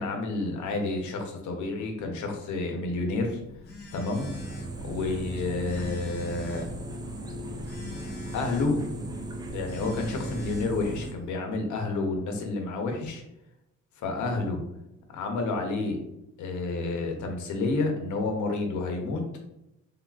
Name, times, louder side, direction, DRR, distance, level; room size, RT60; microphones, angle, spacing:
voice 1, 0.0-3.4 3.9-4.3 4.8-6.6 8.3-8.8 9.5-13.2 14.0-14.6 15.1-16.0 16.4-19.2, left 3 dB, 75° left, 3 dB, 0.7 m, -30 dB
Telephone, 2.8-11.3, left 2 dB, 35° left, 0.7 m, -45 dB
sound 1, 4.1-11.1, right 1 dB, 15° right, 0.3 m, -37 dB
3.4 x 2.3 x 2.3 m, 0.87 s
cardioid pair, 90°, 30 cm